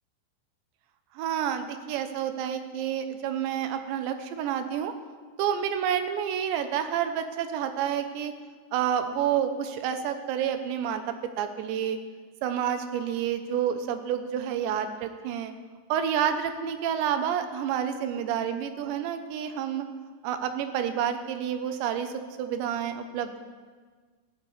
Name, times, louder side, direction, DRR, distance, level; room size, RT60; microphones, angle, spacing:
voice 1, 1.2-4.9 5.4-8.3 8.7-12.0 12.4-15.5 15.9-19.9 20.2-23.4, right 9 dB, 90° right, 8 dB, 3.2 m, -29 dB
16.5 x 16.0 x 3.3 m, 1.5 s
omnidirectional pair, 5.1 m